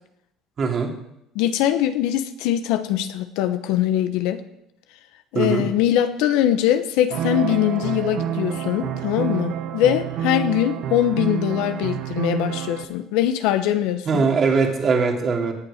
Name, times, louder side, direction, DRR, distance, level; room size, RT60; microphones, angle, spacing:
voice 1, 0.6-0.9 5.3-5.7 14.1-15.5, right 5 dB, 40° right, 1 dB, 2.8 m, -21 dB
voice 2, 1.3-4.4 5.3-14.3, left 11 dB, 80° left, 10 dB, 1.0 m, -22 dB
sound 1, 7.1-12.8, right 10 dB, 65° right, 1.4 m, -28 dB
17.5 x 8.0 x 5.0 m, 0.82 s
supercardioid pair, 100°, 0 cm